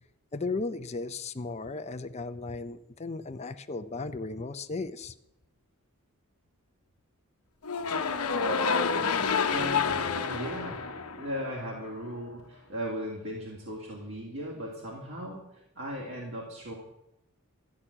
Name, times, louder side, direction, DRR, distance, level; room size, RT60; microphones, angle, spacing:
voice 1, 0.3-5.1, left 3 dB, 30° left, 8 dB, 0.6 m, -35 dB
sound 1, 7.6-11.8, left 5 dB, 75° left, 0.9 m, -29 dB
voice 2, 9.5-10.9 11.2-16.7, equal, 60° right, -4 dB, 2.7 m, -37 dB
13.5 x 6.4 x 9.9 m, 0.88 s
head